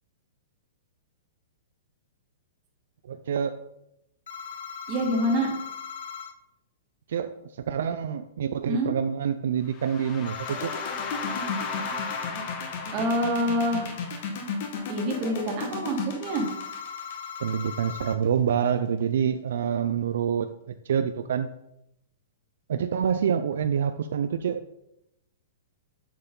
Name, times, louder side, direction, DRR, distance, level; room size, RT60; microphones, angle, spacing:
voice 1, 3.1-3.6 7.1-7.3 7.6-10.7 17.4-20.5 20.8-21.5 22.7-24.6, right 8 dB, 65° right, 9 dB, 0.4 m, -26 dB
sound 1, 4.3-6.3 10.3-12.3 16.3-18.2, left 7 dB, 70° left, 0.9 m, -38 dB
voice 2, 4.9-5.5 8.7-8.9 12.9-13.9 14.9-16.5, equal, 25° right, 0 dB, 1.7 m, -26 dB
sound 2, 9.7-15.6, left 4 dB, 20° left, 0.8 m, -37 dB
sound 3, 10.5-18.2, left 5 dB, 45° left, 1.3 m, -34 dB
9.9 x 4.6 x 3.8 m, 0.83 s
hypercardioid pair, 170°, 0 cm